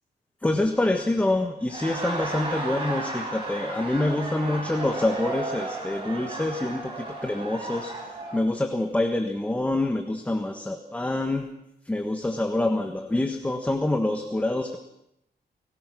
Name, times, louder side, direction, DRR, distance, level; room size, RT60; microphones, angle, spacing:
voice 1, 0.4-8.0 8.3-11.5 11.8-14.8, left 2 dB, 10° left, 5 dB, 1.4 m, -26 dB
Laughter, 1.6-8.4, right 2 dB, 35° right, 7.4 m, -34 dB
30.0 x 18.0 x 6.2 m, 0.84 s
wide cardioid pair, 175°, 16 cm